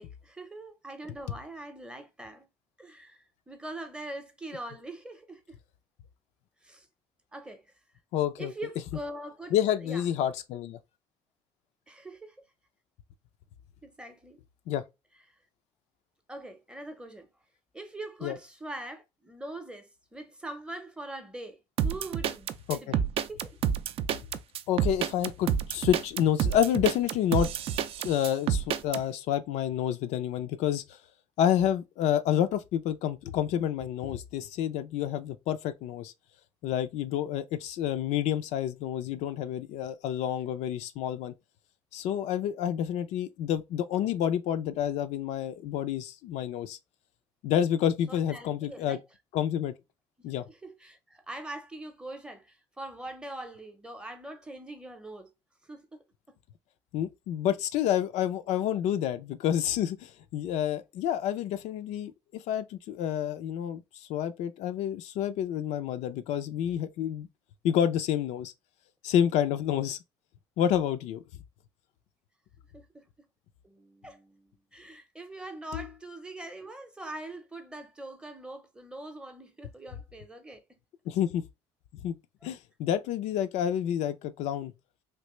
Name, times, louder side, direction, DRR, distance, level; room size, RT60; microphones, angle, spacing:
voice 1, 0.0-2.5 2.8-5.6 6.6-6.9 7.3-7.7 8.4-10.0 11.9-12.4 13.8-14.4 15.3-15.4 16.3-17.3 17.7-23.0 23.3-23.5 48.1-49.0 50.5-55.3 55.6-56.0 56.3-56.4 72.7-73.1 73.6-80.8 82.4-82.5, right 1 dB, 10° right, 0.7 m, -43 dB
voice 2, 8.1-8.5 9.5-10.8 14.7-14.8 18.2-18.4 22.7-22.8 24.7-27.5 28.0-31.0 31.4-36.1 36.6-41.3 41.9-46.8 47.4-49.0 49.3-49.7 50.2-50.4 56.9-67.3 67.6-68.5 69.0-70.0 70.6-71.2 75.7-75.8 81.1-81.4 82.0-82.2 82.4-84.7, left 10 dB, 80° left, 0.4 m, -29 dB
sound 1, 21.8-29.0, right 8 dB, 55° right, 0.3 m, -28 dB
3.2 x 2.5 x 3.0 m
cardioid pair, 115°, 11 cm